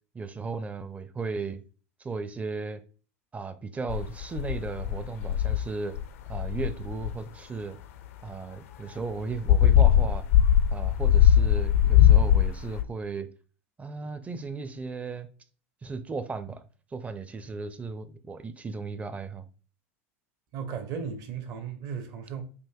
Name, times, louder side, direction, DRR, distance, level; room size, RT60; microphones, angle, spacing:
voice 1, 0.1-1.6 2.0-2.8 3.3-6.0 6.3-7.8 8.2-10.3 10.7-13.3 13.8-15.3 15.8-16.6 16.9-19.5, right 4 dB, 20° right, 0.5 m, -35 dB
sound 1, 3.9-5.6 6.0-6.1 6.3-7.2 9.2-12.8, left 10 dB, 65° left, 0.5 m, -20 dB
voice 2, 20.5-22.4, right 6 dB, 50° right, 0.7 m, -36 dB
5.2 x 2.6 x 2.3 m
figure-of-eight pair, 80°, 8 cm